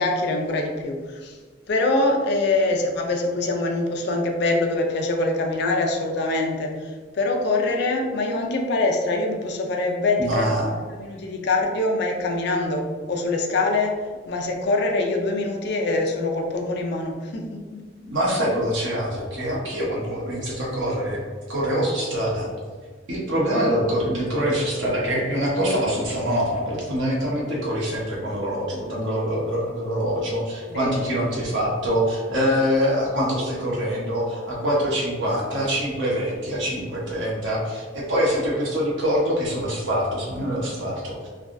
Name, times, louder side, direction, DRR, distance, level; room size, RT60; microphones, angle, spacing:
voice 1, 0.0-1.4 1.7-10.7 11.0-17.8 30.7-31.0, left 2 dB, 60° left, 2 dB, 0.4 m, -24 dB
voice 2, 10.2-10.7 18.0-21.2 21.5-22.5 23.1-41.3, equal, 80° right, -4 dB, 0.9 m, -24 dB
3.3 x 2.3 x 2.5 m, 1.5 s
head